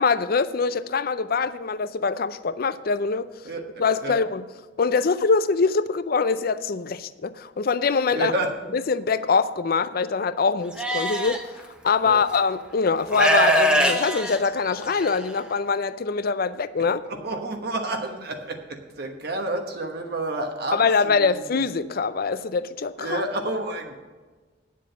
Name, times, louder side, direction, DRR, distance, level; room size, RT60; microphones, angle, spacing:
voice 1, 0.0-3.3 3.8-4.4 4.8-8.3 8.7-11.4 11.8-17.0 20.7-23.2, left 5 dB, 50° left, 0.5 m, -23 dB
voice 2, 8.1-8.5 12.0-12.2 17.0-21.6 23.0-24.0, right 2 dB, 55° right, 1.3 m, -30 dB
Livestock farm animals working animals, 10.8-11.4 12.3-12.4 13.1-15.1, right 1 dB, 5° right, 0.9 m, -22 dB
9.6 x 7.4 x 6.7 m
head